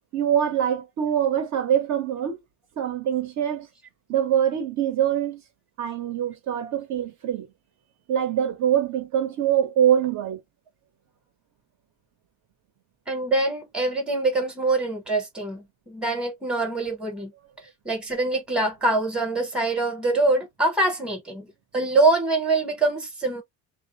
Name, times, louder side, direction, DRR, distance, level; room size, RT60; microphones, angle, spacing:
voice 1, 0.1-2.4 2.8-3.7 4.1-5.4 5.8-7.5 8.1-10.4, right 9 dB, 50° right, 0.9 m, -24 dB
voice 2, 13.1-17.3 17.8-23.4, right 2 dB, 5° right, 0.9 m, -24 dB
2.3 x 2.0 x 2.8 m
cardioid pair, 120°, 37 cm